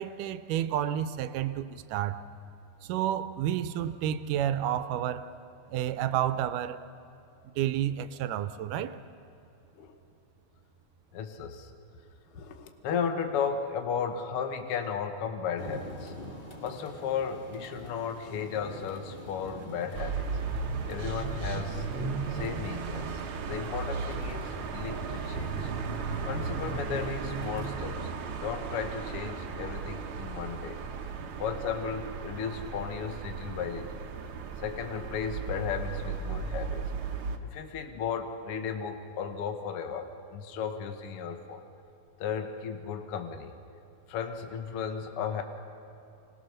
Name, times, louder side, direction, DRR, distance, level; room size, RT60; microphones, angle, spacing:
voice 1, 0.0-2.2 2.8-5.3 5.7-6.8 7.6-9.0, right 11 dB, 80° right, 12 dB, 2.2 m, -30 dB
voice 2, 11.1-11.7 12.3-16.1 16.6-20.3 20.9-21.9 22.3-23.2 23.5-25.7 26.2-28.1 28.4-30.8 31.4-34.1 34.6-36.9 37.5-41.6 42.2-43.5 44.1-45.4, left 7 dB, 65° left, 5 dB, 1.5 m, -35 dB
sound 1, 15.6-27.7, equal, 20° left, 1.6 m, -46 dB
sound 2, 19.9-37.4, right 5 dB, 65° right, 1.3 m, -35 dB
26.0 x 19.5 x 6.5 m, 2.7 s
omnidirectional pair, 3.8 m